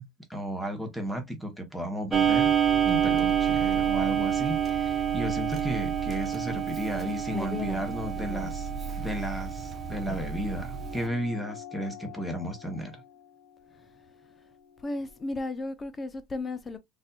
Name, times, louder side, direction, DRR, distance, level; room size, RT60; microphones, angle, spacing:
voice 1, 0.0-8.7 9.0-13.0, equal, ahead, 1.1 m, -34 dB
Clock, 2.1-11.1, right 8 dB, 25° right, 0.7 m, -28 dB
voice 2, 7.0-7.8 8.2-8.6 13.7-14.0 14.3-14.5 14.8-16.8, left 2 dB, 20° left, 0.7 m, -36 dB
sound 1, 10.7-15.5, left 9 dB, 60° left, 2.1 m, -48 dB
4.1 x 2.6 x 2.3 m
supercardioid pair, 110°, 0 cm